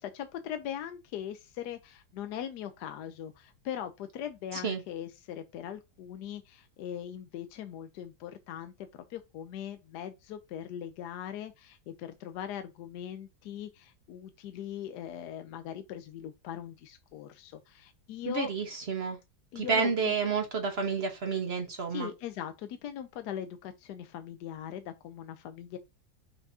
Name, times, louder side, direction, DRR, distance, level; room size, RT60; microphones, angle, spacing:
voice 1, 0.0-18.5 19.5-20.1 21.9-25.8, left 10 dB, 75° left, 1.1 m, -40 dB
voice 2, 18.3-19.2 19.5-22.1, right 5 dB, 50° right, 0.8 m, -30 dB
5.8 x 3.4 x 2.7 m
omnidirectional pair, 2.0 m